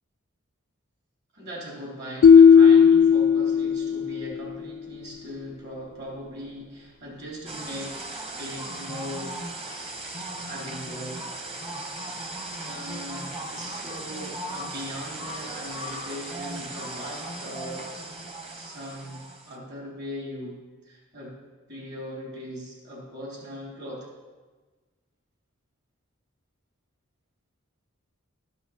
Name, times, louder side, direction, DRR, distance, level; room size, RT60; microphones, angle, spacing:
voice 1, 1.3-9.4 10.4-11.2 12.6-17.9 18.5-20.6 20.8-21.4 21.7-24.1, equal, 55° right, -3 dB, 3.5 m, -39 dB
sound 1, 2.2-4.4, left 7 dB, 70° left, 0.3 m, -15 dB
sound 2, 7.5-19.6, right 1 dB, 30° right, 1.1 m, -37 dB
13.0 x 5.6 x 5.8 m, 1.3 s
head